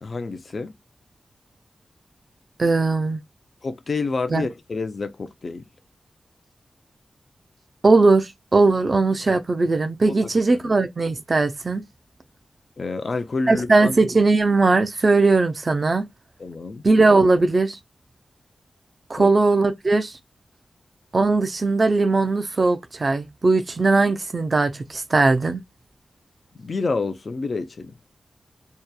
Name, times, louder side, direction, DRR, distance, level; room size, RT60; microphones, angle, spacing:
voice 1, 0.0-0.7 3.6-5.6 10.1-10.2 12.8-13.9 16.4-16.8 19.2-19.3 26.6-27.9, left 3 dB, 45° left, 0.4 m, -28 dB
voice 2, 2.6-3.2 4.3-4.5 7.8-11.8 13.5-16.1 16.8-17.8 19.1-20.1 21.1-25.6, right 3 dB, 35° right, 0.4 m, -19 dB
2.8 x 2.2 x 2.2 m
wide cardioid pair, 140°, 0 cm